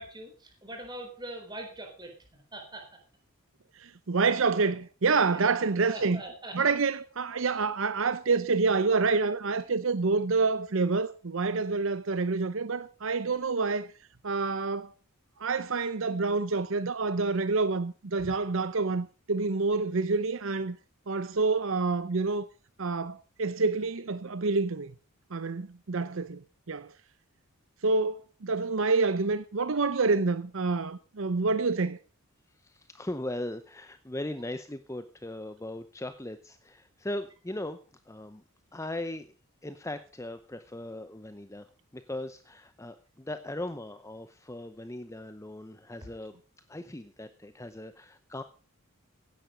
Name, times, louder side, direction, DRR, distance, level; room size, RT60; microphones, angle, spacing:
voice 1, 0.0-2.9 5.3-5.5 5.9-6.6 18.2-18.3, right 1 dB, 20° right, 4.2 m, -42 dB
voice 2, 3.8-6.2 6.5-13.9 14.2-14.9 15.4-20.8 21.1-22.5 22.8-24.9 25.3-26.4 26.7-26.9 27.8-32.0, right 4 dB, 60° right, 0.7 m, -27 dB
voice 3, 32.6-37.8 38.1-38.4 38.7-39.3 39.6-46.4 46.7-48.4, left 1 dB, 15° left, 0.7 m, -39 dB
16.0 x 10.5 x 5.1 m
head